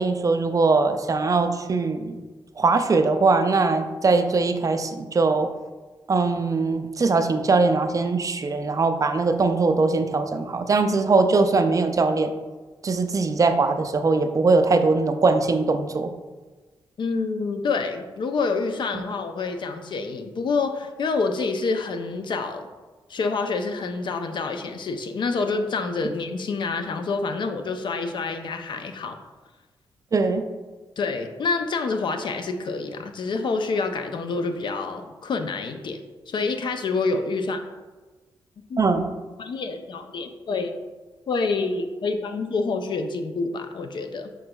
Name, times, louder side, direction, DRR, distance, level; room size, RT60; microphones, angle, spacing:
voice 1, 0.0-2.2 2.6-5.5 6.1-12.3 12.8-16.1 30.1-30.4 38.8-39.1, right 3 dB, 40° right, 8 dB, 0.4 m, -21 dB
voice 2, 17.0-22.7 23.1-29.2 31.0-36.0 36.3-37.6 38.7-39.0 39.4-40.7 41.3-44.3, left 4 dB, 60° left, 6 dB, 0.4 m, -27 dB
6.0 x 3.8 x 2.2 m, 1.3 s
cardioid pair, 75°, 9 cm